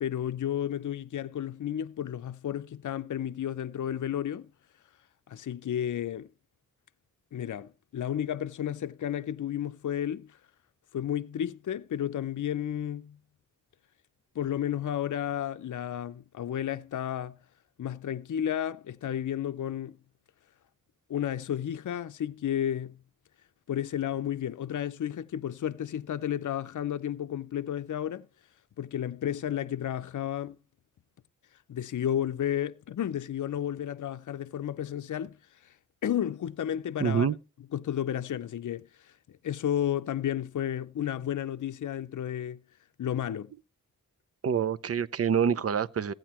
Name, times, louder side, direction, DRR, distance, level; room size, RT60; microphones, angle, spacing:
voice 1, 0.0-4.5 5.3-6.3 7.3-10.4 10.9-13.2 14.4-17.4 17.8-20.0 21.1-23.0 23.7-28.3 28.8-30.6 31.7-35.4 35.6-35.8 36.0-37.3 37.7-42.6 43.0-43.5, left 10 dB, 65° left, 0.5 m, -32 dB
voice 2, 37.0-37.3 44.4-46.1, right 7 dB, 45° right, 0.6 m, -26 dB
15.5 x 9.0 x 2.9 m
wide cardioid pair, 75°, 32 cm